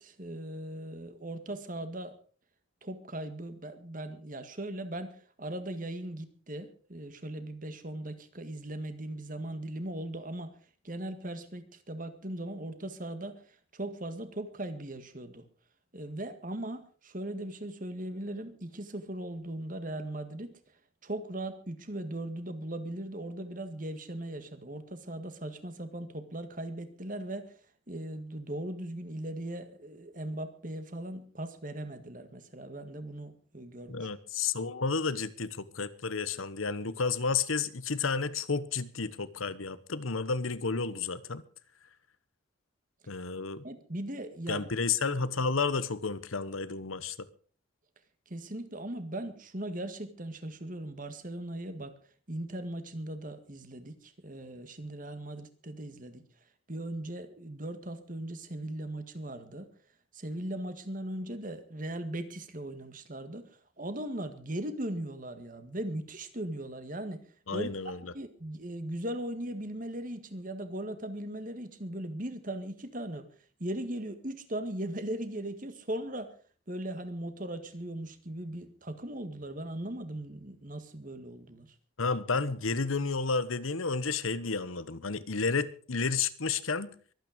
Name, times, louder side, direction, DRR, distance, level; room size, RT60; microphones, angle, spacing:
voice 1, 0.0-2.1 2.8-10.6 10.8-15.4 15.9-20.5 21.0-27.5 27.9-34.1 43.6-44.7 48.3-51.9 52.3-56.2 56.7-59.7 60.1-63.5 63.8-67.2 67.5-73.3 73.6-76.3 76.7-81.7, right 1 dB, 40° right, 1.9 m, -38 dB
voice 2, 33.9-41.4 43.1-43.6 44.5-47.3 67.5-68.1 82.0-86.9, left 4 dB, 90° left, 1.1 m, -31 dB
23.0 x 9.2 x 5.2 m
head